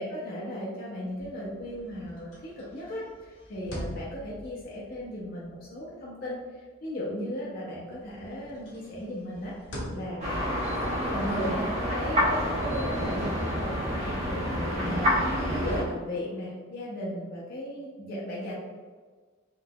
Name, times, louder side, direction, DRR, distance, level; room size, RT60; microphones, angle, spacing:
voice 1, 0.0-10.4 11.1-18.6, equal, 55° left, -6 dB, 0.6 m, -36 dB
sound 1, 1.1-7.5 7.9-13.3, equal, 75° left, 1.1 m, -45 dB
sound 2, 10.2-15.8, equal, 35° right, 0.8 m, -28 dB
3.9 x 2.8 x 2.2 m, 1.5 s
head